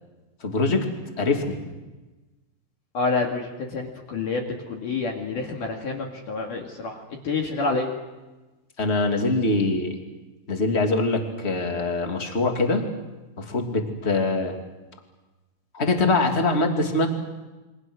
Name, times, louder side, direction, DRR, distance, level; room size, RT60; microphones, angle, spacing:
voice 1, 0.4-0.8 1.2-1.6 8.8-9.9 10.5-12.8 13.4-14.5 15.7-17.1, left 2 dB, 20° left, 3 dB, 1.7 m, -23 dB
voice 2, 2.9-7.9, left 3 dB, 50° left, 1 dB, 3.1 m, -28 dB
28.5 x 24.5 x 6.4 m, 1.1 s
omnidirectional pair, 5.4 m